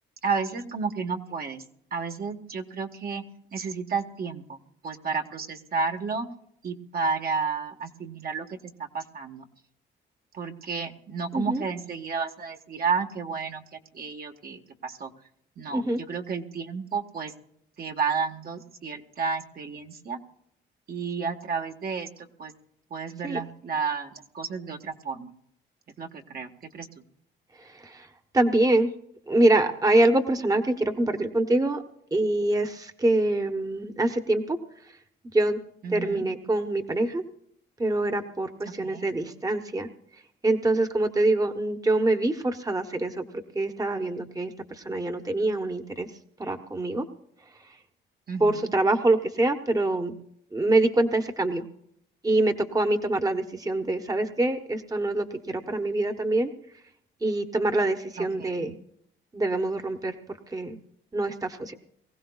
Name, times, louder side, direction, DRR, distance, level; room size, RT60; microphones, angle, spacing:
voice 1, 0.2-1.6 1.9-3.2 3.5-4.6 4.8-6.3 6.6-9.4 10.3-13.6 13.9-15.1 15.6-17.3 17.8-20.2 20.9-22.5 22.9-25.3 26.0-26.5 26.7-26.9 35.8-36.2 38.8-39.1 48.3-48.7 58.2-58.7, right 5 dB, 50° right, 4 dB, 1.5 m, -31 dB
voice 2, 15.7-16.0 23.2-23.4 27.8-28.1 28.3-28.9 29.3-31.8 32.1-34.6 35.3-35.6 35.9-37.2 37.8-39.9 40.4-43.2 43.5-46.1 46.4-47.1 48.4-50.1 50.5-51.6 52.2-56.5 57.2-58.7 59.3-60.1 60.5-60.8 61.1-61.7, right 2 dB, 20° right, 6 dB, 1.1 m, -25 dB
23.5 x 16.0 x 2.4 m, 0.71 s
cardioid pair, 90°, 20 cm